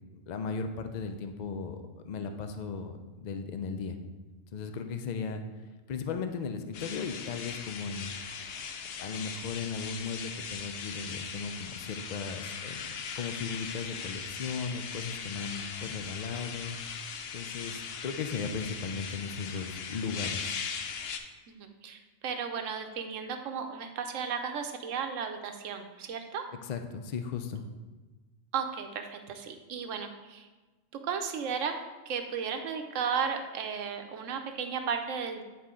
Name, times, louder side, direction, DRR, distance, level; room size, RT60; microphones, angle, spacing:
voice 1, 0.1-4.0 4.5-5.4 5.9-8.1 9.0-12.9 13.2-16.8 17.3-20.5 26.6-27.6, left 5 dB, 80° left, 7 dB, 0.3 m, -36 dB
sound 1, 6.7-21.2, left 6 dB, 60° left, 0.7 m, -39 dB
voice 2, 21.5-26.4 28.5-30.5 31.0-35.4, right 6 dB, 75° right, 6 dB, 1.0 m, -34 dB
9.5 x 4.2 x 3.7 m, 1.3 s
omnidirectional pair, 1.4 m